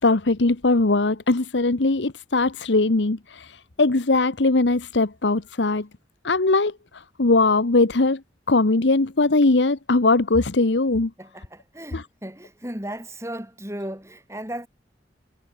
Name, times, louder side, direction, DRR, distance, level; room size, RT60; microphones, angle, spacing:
voice 1, 0.0-5.9 6.2-6.7 7.2-8.2 8.5-11.1 11.9-12.0, left 3 dB, 85° left, 1.1 m, -20 dB
voice 2, 11.2-14.7, right 1 dB, 15° right, 6.8 m, -35 dB
head